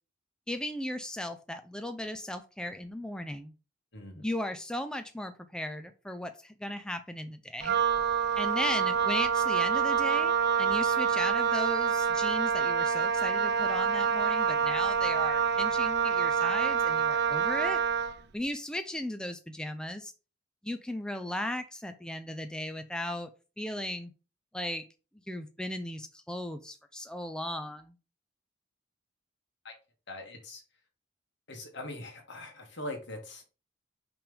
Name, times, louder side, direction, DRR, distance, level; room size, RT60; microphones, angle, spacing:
voice 1, 0.5-3.5 4.2-7.8 8.4-17.8 18.3-20.1 20.6-23.3 23.6-24.1 24.5-24.8 25.3-28.0, left 1 dB, 5° left, 0.5 m, -36 dB
voice 2, 3.9-4.2 29.6-29.8 30.1-30.6 31.5-33.4, left 1 dB, 65° left, 2.0 m, -41 dB
Wind instrument woodwind instrument, 7.6-18.2, right 7 dB, 60° right, 0.6 m, -27 dB
5.8 x 3.4 x 5.3 m
head